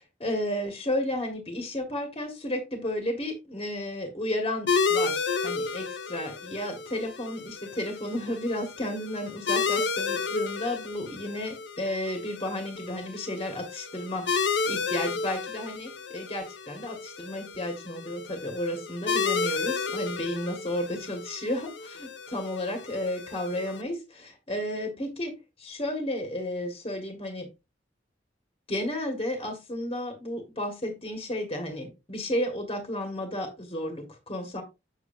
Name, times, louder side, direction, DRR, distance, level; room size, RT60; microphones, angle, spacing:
voice 1, 0.0-27.5 28.7-34.6, left 1 dB, 30° left, 5 dB, 1.8 m, -33 dB
sound 1, 4.7-23.8, left 5 dB, 70° left, 0.8 m, -32 dB
7.8 x 7.5 x 2.6 m, 0.25 s
head